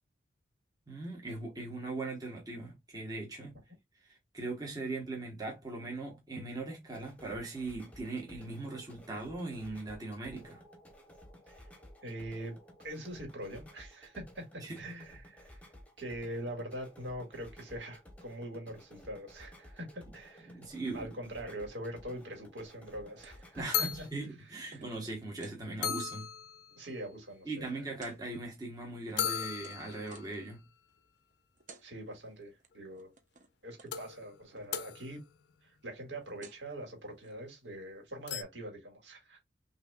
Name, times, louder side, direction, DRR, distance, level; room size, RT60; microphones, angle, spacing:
voice 1, 0.9-3.6 4.0-10.6 14.6-14.9 20.5-21.1 23.6-26.3 27.4-30.6, right 2 dB, 20° right, 1.1 m, -40 dB
sound 1, 6.8-24.1, equal, 10° left, 1.0 m, -55 dB
voice 2, 12.0-15.6 16.0-20.6 20.9-24.1 24.7-24.8 26.8-27.8 31.8-33.1 33.6-35.2 35.6-39.4, right 1 dB, 70° right, 1.9 m, -43 dB
sound 2, 22.9-23.0 23.4-23.5 23.7-24.4 25.1-25.2 25.4-25.5 25.8-26.9 29.2-30.4 32.7-32.8 33.9-35.5 38.3-38.4, left 8 dB, 65° left, 0.5 m, -37 dB
sound 3, 23.2-23.5 23.7-25.6 26.1-26.3 26.6-27.0 28.0-28.2 28.8-30.4 31.3-31.4 31.6-31.9 32.1-32.7 32.9-33.5 33.8-33.9 34.2-34.7 35.9-36.0 36.2-36.7 37.2-37.3, right 4 dB, 45° right, 0.8 m, -56 dB
6.0 x 2.7 x 2.3 m
head